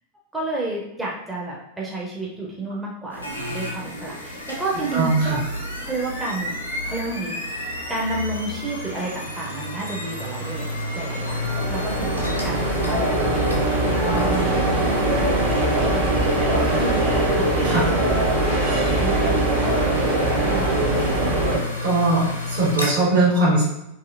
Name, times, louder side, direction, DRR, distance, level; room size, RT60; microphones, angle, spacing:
voice 1, 0.3-5.4 5.8-6.5 6.8-10.7 10.9-14.8 15.3-17.5 18.2-18.5 18.9-20.1 20.5-20.9, right 2 dB, 10° right, -4 dB, 0.5 m, -31 dB
sound 1, 3.1-22.9, left 2 dB, 85° left, 0.6 m, -30 dB
voice 2, 4.9-5.4 17.6-17.9 21.8-23.6, right 2 dB, 60° right, -7 dB, 1.4 m, -20 dB
sound 2, 10.7-21.6, right 2 dB, 40° right, 1.0 m, -22 dB
2.7 x 2.7 x 2.4 m, 0.83 s
figure-of-eight pair, 90°, 0 cm